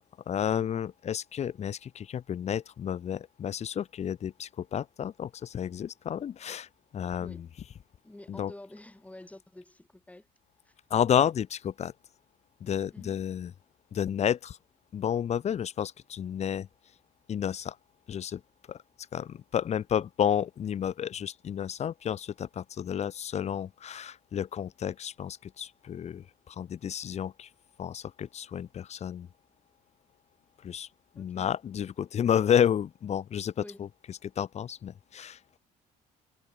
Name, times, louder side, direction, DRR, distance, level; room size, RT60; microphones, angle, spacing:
voice 1, 0.3-6.7 6.9-7.6 8.3-8.5 10.9-11.9 12.6-13.5 13.9-14.6 14.9-16.7 17.3-17.8 18.1-18.4 18.7-18.8 19.1-27.5 27.8-29.3 30.6-30.9 31.1-35.4, left 9 dB, 40° left, 0.7 m, -31 dB
voice 2, 8.0-10.3 10.7-10.8 12.9-13.2 31.2-31.5 33.6-33.9, left 1 dB, 10° left, 7.3 m, -48 dB
cardioid pair, 110°, 17 cm